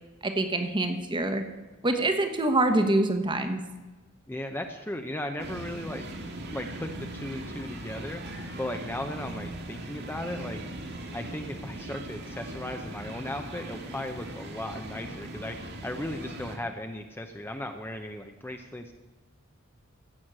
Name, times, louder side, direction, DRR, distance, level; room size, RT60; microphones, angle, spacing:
voice 1, 0.2-1.4 1.8-3.6, right 2 dB, 25° right, 8 dB, 1.2 m, -25 dB
voice 2, 4.3-6.1 6.5-8.2 8.6-10.6 11.1-15.6 15.8-18.9, left 1 dB, 10° left, 5 dB, 0.7 m, -36 dB
sound 1, 5.4-16.6, right 1 dB, 50° right, 1.9 m, -39 dB
16.0 x 6.4 x 7.5 m, 1.2 s
head